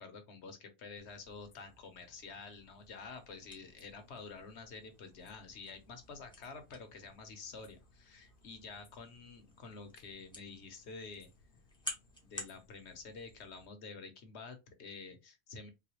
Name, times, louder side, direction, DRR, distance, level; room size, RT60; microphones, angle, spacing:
voice 1, 0.0-11.3 12.2-15.7, left 4 dB, 70° left, 1.1 m, -49 dB
sound 1, 1.0-13.7, left 3 dB, 55° left, 0.7 m, -66 dB
sound 2, 2.8-12.6, left 1 dB, 5° left, 0.7 m, -51 dB
4.0 x 2.2 x 2.9 m
omnidirectional pair, 1.2 m